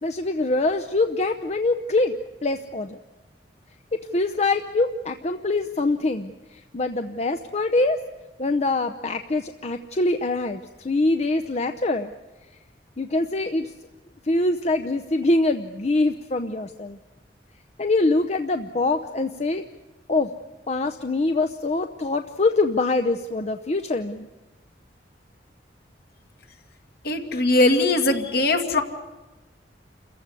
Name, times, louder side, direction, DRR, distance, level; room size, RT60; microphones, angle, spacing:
voice 1, 0.0-3.0 3.9-8.0 8.4-12.1 13.0-13.7 14.2-17.0 17.8-19.6 20.1-20.3 20.7-24.3, left 2 dB, 40° left, 7 dB, 0.7 m, -24 dB
voice 2, 27.0-28.8, left 2 dB, 60° left, 4 dB, 2.2 m, -20 dB
28.5 x 15.0 x 9.6 m, 1.1 s
head